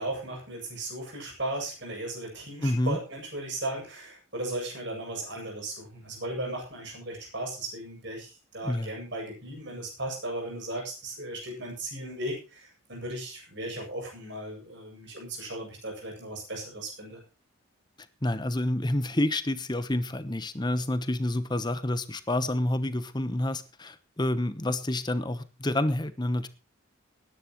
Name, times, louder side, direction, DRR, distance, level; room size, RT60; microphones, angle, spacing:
voice 1, 0.0-17.2, right 1 dB, 55° right, 1 dB, 7.8 m, -36 dB
voice 2, 2.6-3.0 8.6-8.9 18.2-26.5, left 1 dB, 20° left, 12 dB, 1.0 m, -28 dB
19.5 x 11.0 x 3.1 m, 0.32 s
head